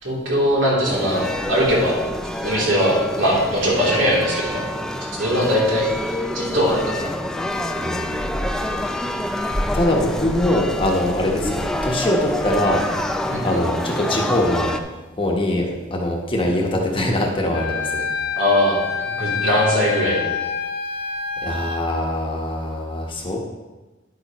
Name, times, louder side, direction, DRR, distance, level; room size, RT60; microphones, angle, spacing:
voice 1, 0.0-2.0 2.4-4.6 5.2-7.1 13.3-13.5 18.3-20.2, equal, 75° right, -5 dB, 3.1 m, -20 dB
sound 1, 0.9-14.8, left 1 dB, 5° left, 0.4 m, -27 dB
voice 2, 7.8-8.4 8.8-8.9 9.7-12.8 13.4-14.7 15.2-18.1 21.4-23.4, left 1 dB, 25° left, 0 dB, 1.2 m, -22 dB
Wind instrument woodwind instrument, 17.5-21.8, left 6 dB, 55° left, 0.6 m, -27 dB
10.0 x 8.8 x 3.0 m, 1.2 s
head